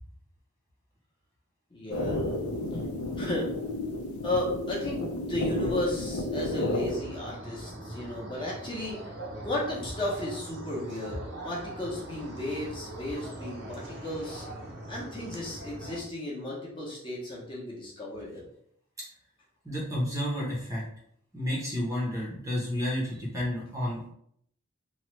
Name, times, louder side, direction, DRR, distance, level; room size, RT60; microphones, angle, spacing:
voice 1, 1.7-2.2 3.2-3.5 4.2-5.0 5.3-9.0 9.4-11.2 11.4-14.5 14.9-18.4, left 1 dB, 25° left, -5 dB, 0.7 m, -34 dB
sound 1, 1.9-7.0, left 2 dB, 90° left, 0.5 m, -32 dB
sound 2, 6.9-16.0, right 1 dB, 55° right, 0.6 m, -42 dB
voice 2, 19.6-20.8 21.3-24.1, equal, 15° right, -5 dB, 0.7 m, -31 dB
3.0 x 2.1 x 3.1 m, 0.69 s
head